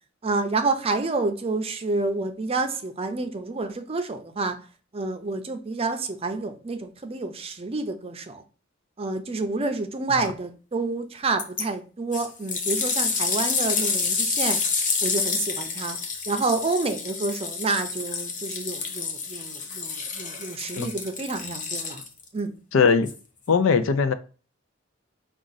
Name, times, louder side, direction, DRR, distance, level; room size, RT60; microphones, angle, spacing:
voice 1, 0.2-4.6 4.9-8.4 9.0-14.6 15.0-16.0 16.3-22.0 22.3-22.5, right 3 dB, 30° right, 0.5 m, -28 dB
sound 1, 11.4-11.6 12.1-22.3 23.1-23.2, left 5 dB, 40° left, 0.7 m, -28 dB
voice 2, 22.7-23.1 23.5-24.1, left 5 dB, 90° left, 0.5 m, -20 dB
4.8 x 2.4 x 3.9 m
head